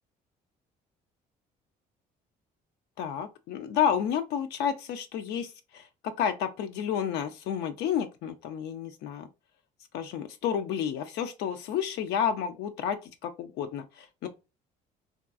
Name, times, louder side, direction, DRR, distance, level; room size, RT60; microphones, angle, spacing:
voice 1, 3.0-9.3 9.9-14.3, left 8 dB, 80° left, 0.4 m, -31 dB
3.5 x 2.3 x 2.4 m
cardioid pair, 110°, 17 cm